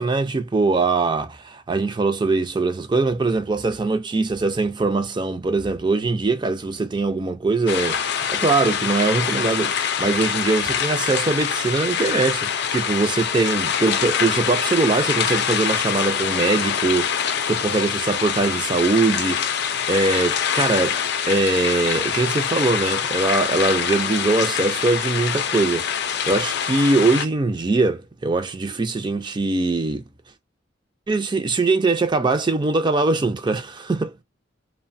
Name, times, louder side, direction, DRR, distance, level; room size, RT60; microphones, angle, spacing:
voice 1, 0.0-21.0 21.3-30.1 31.1-34.2, right 3 dB, 25° right, 0.4 m, -22 dB
sound 1, 7.7-27.3, left 7 dB, 60° left, 0.5 m, -24 dB
3.0 x 2.1 x 2.5 m
head